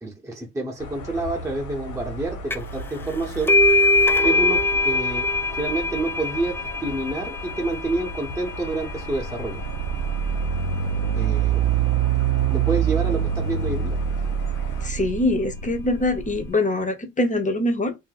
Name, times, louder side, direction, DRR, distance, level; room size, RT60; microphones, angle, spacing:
voice 1, 0.0-3.6 4.2-9.6 11.2-11.6 12.5-14.0, right 2 dB, 10° right, 0.9 m, -28 dB
sound 1, 0.8-14.9, left 1 dB, 80° left, 1.1 m, -37 dB
sound 2, 2.5-2.8 3.1-10.4, left 2 dB, 10° left, 0.3 m, -23 dB
sound 3, 8.5-16.5, right 9 dB, 60° right, 0.5 m, -25 dB
voice 2, 14.8-17.9, left 2 dB, 25° left, 0.8 m, -23 dB
2.6 x 2.1 x 3.9 m
cardioid pair, 90°, 30 cm